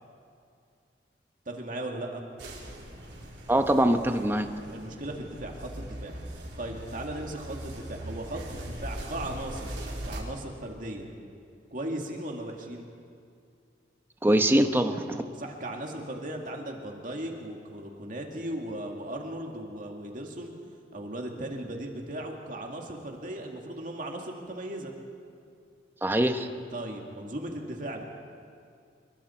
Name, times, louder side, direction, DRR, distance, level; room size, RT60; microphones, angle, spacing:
voice 1, 1.5-2.2 4.7-6.1 6.6-9.8 10.0-11.1 11.7-12.9 15.3-20.5 20.9-24.9 26.7-28.0, right 1 dB, 45° right, 1 dB, 2.2 m, -37 dB
sound 1, 2.4-10.2, right 1 dB, 75° right, 3.9 m, -40 dB
voice 2, 3.5-4.5 14.2-15.2 26.0-26.5, right 1 dB, 10° right, 6 dB, 1.0 m, -23 dB
27.0 x 22.0 x 4.5 m, 2.3 s
head